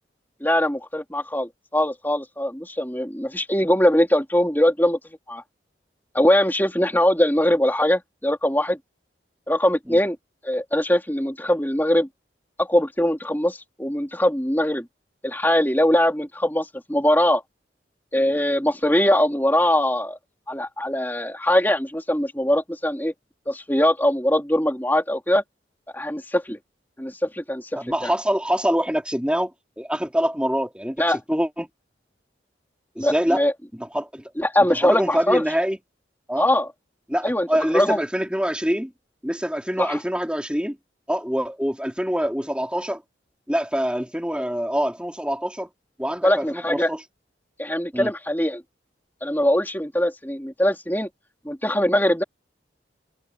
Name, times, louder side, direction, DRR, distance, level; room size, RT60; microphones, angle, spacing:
voice 1, 0.4-5.0 5.3-5.4 6.1-8.8 9.5-10.1 10.4-12.1 12.6-14.8 15.2-17.4 18.1-20.2 20.5-23.1 23.5-25.4 25.9-26.6 27.0-28.1 31.0-31.2 33.0-33.5 34.4-35.4 36.4-36.7 37.2-37.5 37.7-38.0 39.8-40.0 46.2-46.9 47.6-48.6 49.2-51.1 51.4-52.2, left 1 dB, 10° left, 3.5 m, -21 dB
voice 2, 27.8-29.5 29.8-31.0 31.3-31.7 33.0-33.4 33.7-34.2 34.7-35.8 36.3-36.5 37.1-38.9 39.2-40.8 41.1-43.0 43.5-45.7 46.0-47.0 47.9-48.1, equal, 5° right, 4.0 m, -25 dB
head